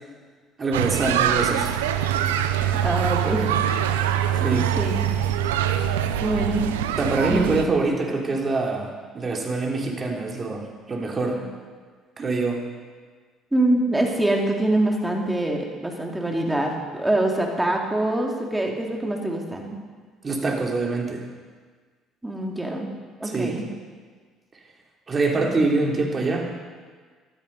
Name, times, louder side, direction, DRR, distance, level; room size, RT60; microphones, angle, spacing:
voice 1, 0.6-1.7 4.3-4.7 7.0-11.4 12.2-12.6 20.2-21.2 23.2-23.6 25.1-26.5, right 3 dB, 35° right, 1 dB, 3.2 m, -25 dB
sound 1, 0.7-7.7, right 10 dB, 85° right, 0.6 m, -24 dB
voice 2, 2.8-3.6 4.8-5.1 6.2-6.7 7.2-7.6 13.5-19.8 22.2-22.9 23.2-23.6, right 1 dB, 10° right, 0 dB, 2.9 m, -24 dB
15.0 x 12.5 x 5.4 m, 1.5 s
hypercardioid pair, 60°, 0 cm